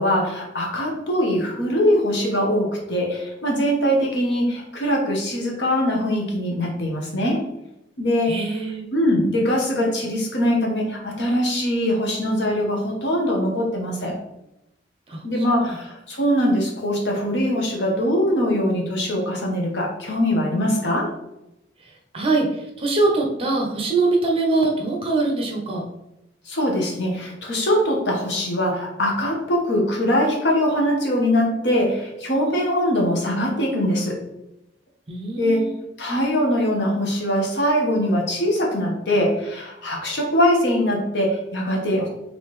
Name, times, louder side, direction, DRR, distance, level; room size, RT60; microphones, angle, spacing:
voice 1, 0.0-7.4 8.0-8.4 8.9-14.2 15.2-21.1 26.5-34.2 35.4-35.6 36.0-42.1, equal, 70° left, -1 dB, 1.1 m, -22 dB
voice 2, 8.2-8.9 15.1-15.8 21.8-25.8 35.1-35.8, right 3 dB, 30° right, 0 dB, 0.9 m, -23 dB
4.2 x 3.3 x 3.2 m, 0.89 s
head